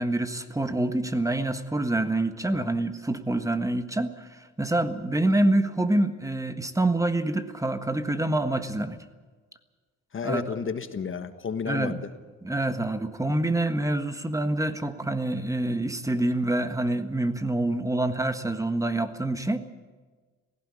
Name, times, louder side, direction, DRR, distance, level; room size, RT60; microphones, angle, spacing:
voice 1, 0.0-9.0 10.2-10.4 11.7-12.0 12.4-19.6, right 1 dB, 10° right, 9 dB, 1.5 m, -26 dB
voice 2, 10.1-12.1 17.7-17.8, left 6 dB, 40° left, 9 dB, 1.5 m, -32 dB
17.5 x 16.0 x 9.8 m, 1.4 s
cardioid pair, 90°, 30 cm